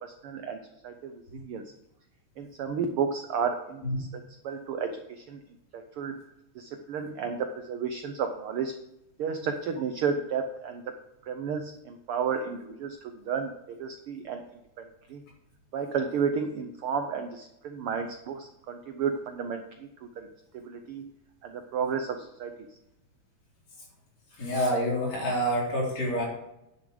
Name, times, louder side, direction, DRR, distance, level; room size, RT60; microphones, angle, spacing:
voice 1, 0.0-0.6 0.8-1.6 2.4-5.4 5.7-6.2 6.5-8.7 9.2-10.8 11.2-14.4 14.8-15.2 15.7-19.9 20.2-20.3 20.5-21.1 21.4-22.5, right 6 dB, 75° right, 6 dB, 1.3 m, -32 dB
voice 2, 24.4-26.2, equal, 60° left, -4 dB, 4.6 m, -27 dB
10.0 x 6.9 x 5.0 m, 0.86 s
omnidirectional pair, 3.3 m